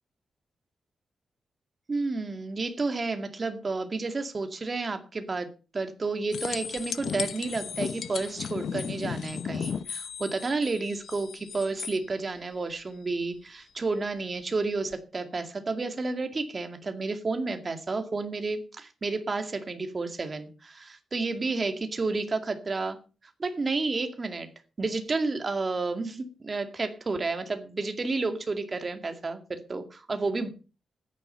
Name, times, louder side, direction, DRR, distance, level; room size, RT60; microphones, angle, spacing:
voice 1, 1.9-5.5 5.7-23.0 23.4-24.5 24.8-30.5, right 3 dB, 30° right, 7 dB, 2.1 m, -31 dB
sound 1, 6.3-12.0 14.9-15.0, left 7 dB, 75° left, 0.9 m, -35 dB
14.0 x 10.0 x 5.7 m, 0.35 s
wide cardioid pair, 145°, 0 cm